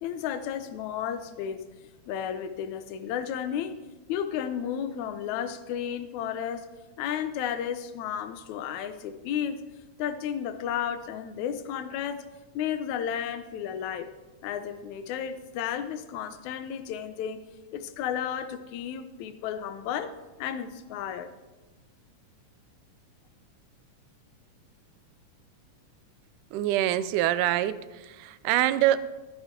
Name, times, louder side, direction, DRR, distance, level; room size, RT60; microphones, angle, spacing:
voice 1, 0.0-1.6 2.1-3.8 4.1-6.7 7.0-9.6 10.0-12.2 12.6-14.1 14.4-17.4 17.7-21.3, left 9 dB, 75° left, 10 dB, 2.0 m, -33 dB
voice 2, 26.5-29.0, right 13 dB, 85° right, 14 dB, 2.1 m, -25 dB
14.0 x 12.0 x 3.8 m, 1.2 s
omnidirectional pair, 3.6 m